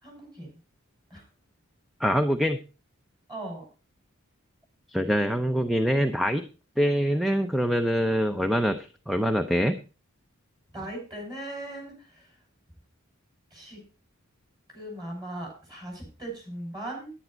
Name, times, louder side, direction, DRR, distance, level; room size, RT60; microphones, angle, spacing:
voice 1, 0.0-0.6 1.1-1.2 3.3-3.6 10.7-12.3 13.5-13.8 14.7-17.1, right 1 dB, 20° right, 0 dB, 6.1 m, -38 dB
voice 2, 2.0-2.6 4.9-6.4 6.8-9.8, equal, ahead, 8 dB, 0.5 m, -24 dB
10.5 x 9.9 x 4.4 m, 0.34 s
head